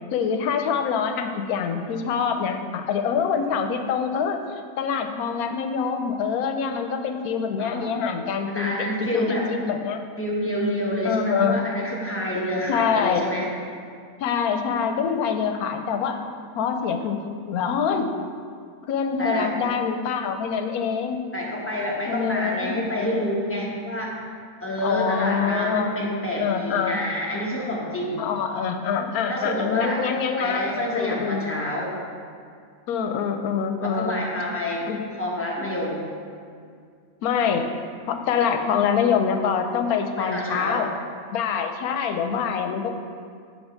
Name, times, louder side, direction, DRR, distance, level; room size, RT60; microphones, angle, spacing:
voice 1, 0.1-4.4 4.8-10.0 11.0-11.6 12.7-13.3 14.2-16.2 16.6-17.2 17.5-18.1 18.9-21.2 22.0-22.8 24.8-26.0 26.4-27.0 28.2-31.4 32.9-34.2 34.9-35.1 35.6-35.7 37.2-37.7 38.1-40.9 41.3-42.9, left 6 dB, 90° left, 6 dB, 1.1 m, -25 dB
voice 2, 8.5-9.5 10.2-13.5 19.2-19.5 21.3-24.1 24.6-28.2 29.3-30.0 30.4-31.9 33.8-34.9 35.2-36.0 40.2-40.8, equal, 15° left, -4 dB, 0.6 m, -28 dB
8.2 x 3.3 x 5.0 m, 2.2 s
omnidirectional pair, 1.5 m